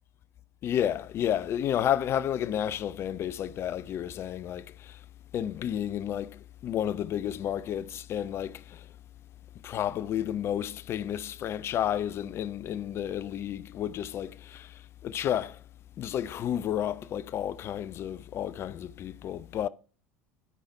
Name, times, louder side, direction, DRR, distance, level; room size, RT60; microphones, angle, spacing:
voice 1, 0.6-4.9 5.3-6.4 6.6-8.8 9.6-14.7 15.0-15.6 16.0-19.7, left 10 dB, 35° left, 0.4 m, -31 dB
11.0 x 5.6 x 4.7 m
figure-of-eight pair, 70°, 8 cm